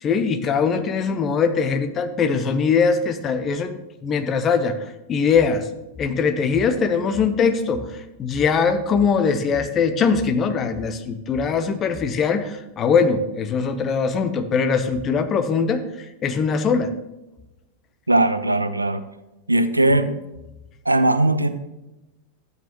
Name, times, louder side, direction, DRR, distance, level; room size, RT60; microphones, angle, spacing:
voice 1, 0.0-5.7 6.0-7.9 8.2-15.8 16.2-16.9, left 5 dB, 25° left, 9 dB, 0.9 m, -21 dB
voice 2, 18.1-19.0 19.5-20.1 20.9-21.5, right 2 dB, 85° right, 11 dB, 0.6 m, -19 dB
12.5 x 8.5 x 3.0 m, 0.98 s
figure-of-eight pair, 90°, 0 cm